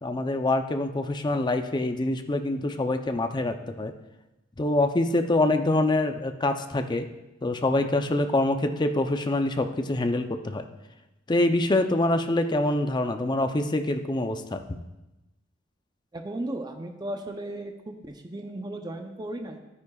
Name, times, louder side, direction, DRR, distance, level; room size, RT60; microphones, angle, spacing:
voice 1, 0.0-3.9 4.6-7.1 7.4-10.7 11.3-14.6, left 2 dB, 25° left, 7 dB, 0.5 m, -25 dB
voice 2, 16.1-19.6, right 1 dB, 20° right, 5 dB, 0.6 m, -35 dB
12.5 x 9.6 x 2.3 m, 0.99 s
head